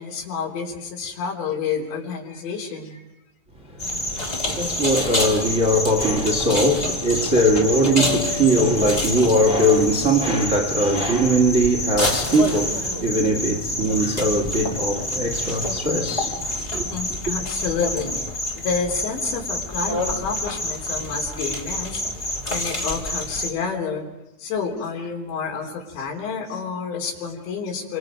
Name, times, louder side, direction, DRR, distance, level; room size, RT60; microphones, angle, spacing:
voice 1, 0.0-3.0 16.7-24.1 24.4-28.0, left 5 dB, 70° left, 5.7 m, -29 dB
sound 1, 3.8-23.5, left 1 dB, 10° left, 1.9 m, -27 dB
voice 2, 3.9-16.8, right 1 dB, 75° right, 0.7 m, -21 dB
27.5 x 25.5 x 5.2 m
omnidirectional pair, 5.4 m